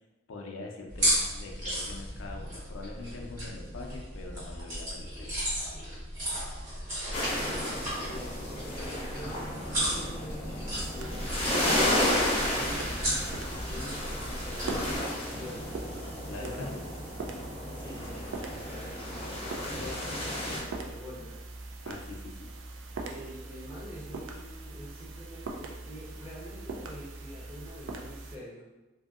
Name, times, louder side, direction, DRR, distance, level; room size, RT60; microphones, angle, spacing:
voice 1, 0.3-5.3 16.2-16.9 21.8-22.5, left 3 dB, 85° left, 1 dB, 0.4 m, -43 dB
sound 1, 0.9-15.0, equal, 40° right, 1.5 m, -35 dB
sound 2, 7.1-20.6, left 1 dB, 30° left, 0.5 m, -33 dB
voice 2, 7.7-10.4 10.9-12.9 13.6-16.1 16.4-16.8 17.7-21.4 23.1-28.7, equal, 10° right, -6 dB, 0.6 m, -46 dB
sound 3, 10.7-28.4, right 2 dB, 70° right, 0.4 m, -42 dB
2.7 x 2.6 x 2.4 m, 1.1 s
head